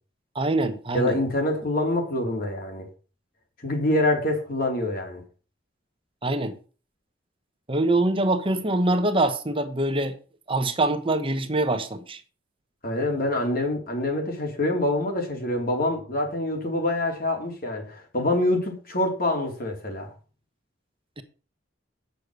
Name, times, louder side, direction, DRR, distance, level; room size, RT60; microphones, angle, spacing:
voice 1, 0.3-1.2 6.2-6.6 7.7-10.1 10.5-12.2 21.2-21.3, right 2 dB, 30° right, 1.1 m, -24 dB
voice 2, 0.9-2.9 3.6-5.2 12.8-20.1, left 1 dB, 50° left, 3.3 m, -26 dB
9.3 x 6.9 x 6.4 m
head